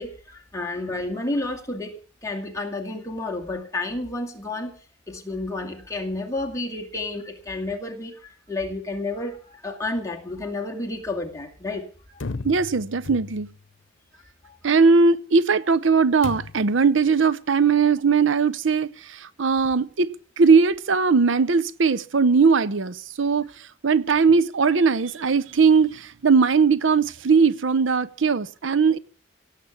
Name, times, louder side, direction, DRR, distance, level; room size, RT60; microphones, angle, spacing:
voice 1, 0.0-4.7 5.1-12.2 14.1-14.6, left 2 dB, 15° left, 2.3 m, -31 dB
sound 1, 12.2-13.7 16.2-16.8, left 3 dB, 80° left, 0.9 m, -35 dB
voice 2, 12.4-13.5 14.6-20.1 20.4-29.0, right 5 dB, 75° right, 0.6 m, -19 dB
17.0 x 7.5 x 8.3 m
head